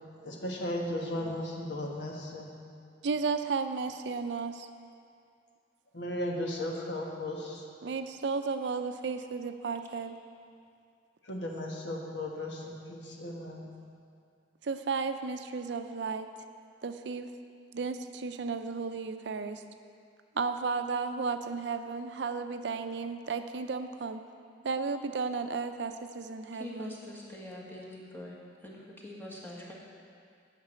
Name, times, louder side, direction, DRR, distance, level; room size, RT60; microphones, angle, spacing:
voice 1, 0.2-2.5 5.9-7.6 11.3-13.7, left 1 dB, 80° left, 0 dB, 1.3 m, -36 dB
voice 2, 3.0-4.7 7.8-10.2 14.6-16.3 16.8-17.3 17.7-19.6 20.3-24.2 24.6-26.9, right 4 dB, 70° right, 8 dB, 0.5 m, -34 dB
voice 3, 26.5-28.4 28.6-29.7, left 1 dB, 10° left, -5 dB, 1.7 m, -44 dB
8.8 x 5.9 x 8.0 m, 2.3 s
head